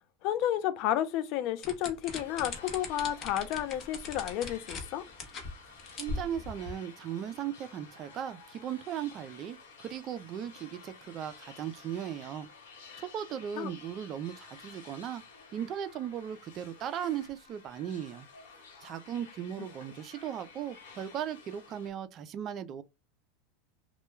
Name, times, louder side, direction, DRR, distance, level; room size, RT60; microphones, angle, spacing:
voice 1, 0.2-5.0 13.6-13.7, left 11 dB, 55° left, 0.4 m, -31 dB
sound 1, 1.6-4.9 5.2-5.5 5.8-6.7, left 4 dB, 35° left, 0.8 m, -39 dB
sound 2, 2.0-21.9, left 4 dB, 85° left, 1.0 m, -53 dB
voice 2, 6.0-12.5 13.0-15.2 15.5-18.3 18.8-22.8, right 9 dB, 40° right, 0.3 m, -37 dB
2.1 x 2.1 x 3.0 m
supercardioid pair, 120°, 0 cm